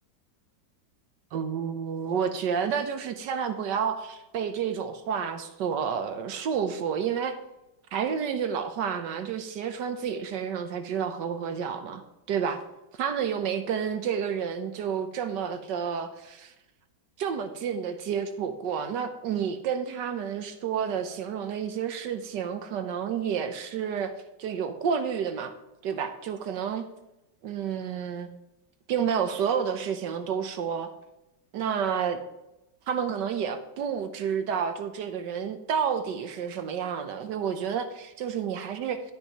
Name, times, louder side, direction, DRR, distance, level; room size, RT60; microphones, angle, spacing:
voice 1, 1.3-7.4 7.9-12.0 12.3-12.6 13.0-16.5 17.2-24.1 24.4-25.5 25.8-26.9 27.4-28.3 28.9-30.9 31.5-32.2 32.9-39.0, right 7 dB, 75° right, 8 dB, 1.5 m, -30 dB
12.0 x 9.8 x 3.1 m, 0.94 s
omnidirectional pair, 1.9 m